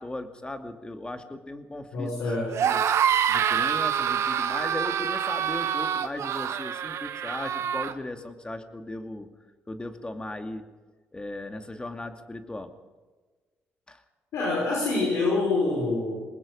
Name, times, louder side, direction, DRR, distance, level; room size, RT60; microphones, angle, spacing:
voice 1, 0.0-2.3 2.6-2.8 3.3-9.3 9.7-10.7 11.1-12.7 13.9-14.0, left 2 dB, 20° left, 6 dB, 2.6 m, -37 dB
voice 2, 1.9-2.5 14.3-16.2, left 3 dB, 75° left, -3 dB, 5.8 m, -26 dB
sound 1, 2.5-7.9, right 9 dB, 65° right, 1.5 m, -26 dB
23.0 x 20.5 x 5.5 m, 1.3 s
supercardioid pair, 65°, 5 cm